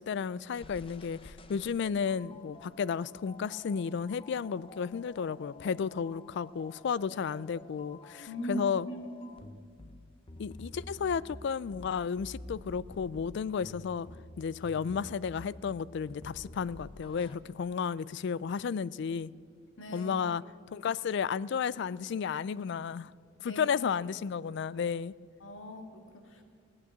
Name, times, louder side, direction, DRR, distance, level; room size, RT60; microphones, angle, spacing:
voice 1, 0.0-8.9 10.4-14.1 14.4-19.3 19.9-20.4 20.7-23.1 23.4-25.1, left 6 dB, 60° left, 0.3 m, -33 dB
sound 1, 0.5-17.4, left 2 dB, 30° left, 0.7 m, -50 dB
voice 2, 8.3-9.5 19.8-20.3 23.4-23.7 25.4-26.4, equal, 85° left, 2.0 m, -40 dB
19.0 x 8.7 x 8.1 m
head